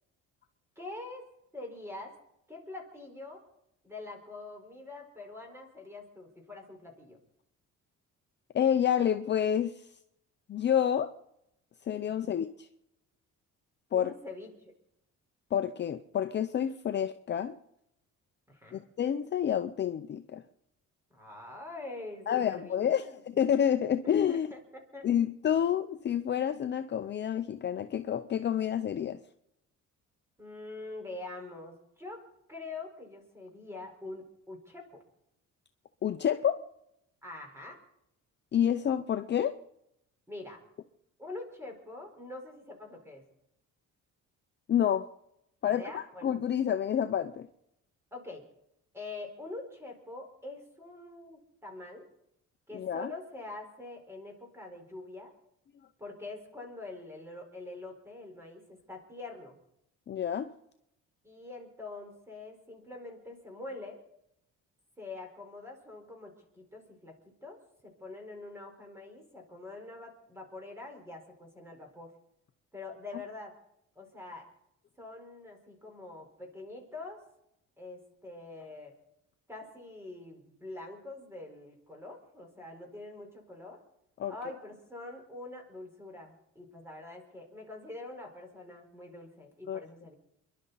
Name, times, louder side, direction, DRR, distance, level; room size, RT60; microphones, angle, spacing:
voice 1, 0.8-1.3 1.5-2.1 2.5-3.4 3.8-7.2 13.9-14.7 18.5-18.8 21.1-23.2 24.0-25.1 30.4-35.0 37.2-37.8 40.3-40.6 41.2-43.2 45.6-46.3 48.1-48.5 48.9-52.1 52.7-55.3 56.0-59.6 61.2-64.0 65.0-72.1 72.7-73.5 74.0-74.5 75.0-77.2 77.8-78.9 79.5-83.8 84.3-90.1, left 2 dB, 10° right, 4.4 m, -45 dB
voice 2, 8.5-9.7 10.5-11.1 11.8-12.7 13.9-14.1 15.5-17.6 18.7-20.4 22.3-24.5 25.0-29.2 36.0-36.6 38.5-39.5 44.7-45.1 45.6-47.5 52.7-53.1 60.1-60.5 84.2-84.6 89.7-89.8, left 9 dB, 35° left, 0.7 m, -29 dB
29.0 x 11.5 x 4.0 m
cardioid pair, 155°, 31 cm